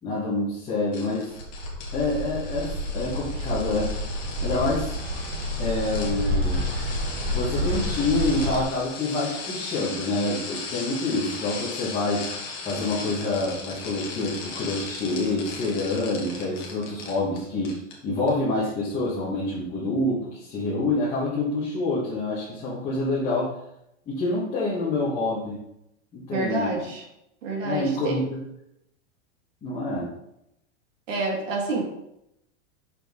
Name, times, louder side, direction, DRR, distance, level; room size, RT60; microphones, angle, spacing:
voice 1, 0.0-1.3 1.9-3.9 4.4-4.9 5.6-6.6 7.3-12.3 12.6-23.6 24.1-25.6 26.1-26.7 27.6-28.4 29.6-30.1, left 2 dB, 15° left, -8 dB, 1.3 m, -27 dB
sound 1, 0.9-17.4 17.6-17.9 18.3-18.4, left 4 dB, 35° left, 1.3 m, -37 dB
Bird, 1.4-8.6, equal, 60° right, 1.2 m, -29 dB
voice 2, 26.3-27.0 27.4-28.2 31.1-31.8, right 2 dB, 85° right, -1 dB, 2.0 m, -28 dB
6.3 x 4.5 x 3.5 m, 0.81 s
supercardioid pair, 170°, 37 cm